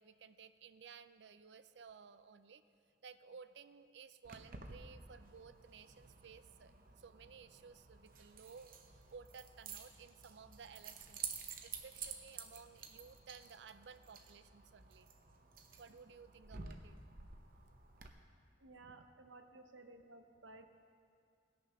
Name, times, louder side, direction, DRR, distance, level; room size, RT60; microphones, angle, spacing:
voice 1, 0.0-2.6 3.0-11.2 11.6-15.1 15.8-17.3, right 6 dB, 65° right, 12 dB, 0.5 m, -57 dB
Keys jangling, 4.2-18.1, right 6 dB, 50° right, 0.8 m, -51 dB
voice 2, 18.6-20.7, right 2 dB, 90° right, 6 dB, 0.9 m, -56 dB
18.0 x 6.6 x 5.6 m, 2.3 s
head